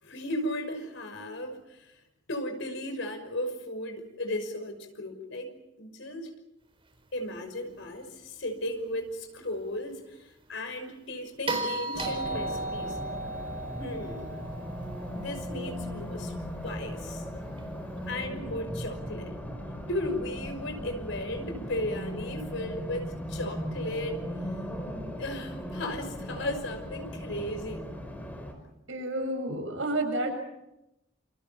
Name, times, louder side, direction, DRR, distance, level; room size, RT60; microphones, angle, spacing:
voice 1, 0.0-2.0 2.3-5.5 5.8-6.3 7.1-13.0 13.7-14.4 15.1-16.3 16.6-17.3 18.1-19.4 19.9-24.2 25.2-27.8, left 1 dB, 70° left, 6 dB, 5.8 m, -35 dB
sound 1, 11.5-15.7 18.0-18.1, right 2 dB, 30° right, 4.4 m, -35 dB
Race car auto racing, 11.9-28.5, equal, 10° left, 5.0 m, -38 dB
voice 2, 28.9-30.3, right 1 dB, 80° right, 5 dB, 7.3 m, -30 dB
28.5 x 27.5 x 5.9 m, 0.89 s
head